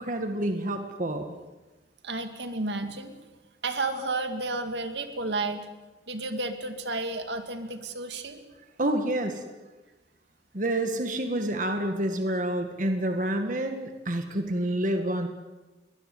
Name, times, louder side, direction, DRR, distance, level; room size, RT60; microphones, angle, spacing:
voice 1, 0.0-1.4 8.8-9.4 10.5-15.3, right 1 dB, 45° right, 5 dB, 1.8 m, -28 dB
voice 2, 2.0-3.2 3.6-5.7 6.1-8.4, right 2 dB, 75° right, 7 dB, 2.2 m, -32 dB
22.5 x 20.0 x 7.9 m, 1.2 s
head